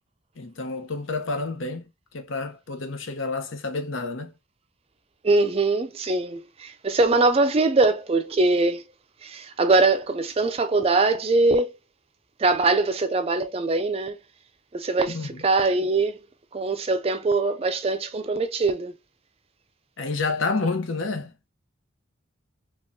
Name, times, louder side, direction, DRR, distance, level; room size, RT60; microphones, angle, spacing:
voice 1, 0.4-1.9 2.1-4.3 15.1-15.5 20.0-21.3, left 3 dB, 75° left, 0.8 m, -29 dB
voice 2, 5.2-8.8 9.2-11.7 12.4-14.2 14.7-16.2 16.5-18.9, right 3 dB, 30° right, 0.4 m, -22 dB
3.6 x 3.1 x 2.6 m
head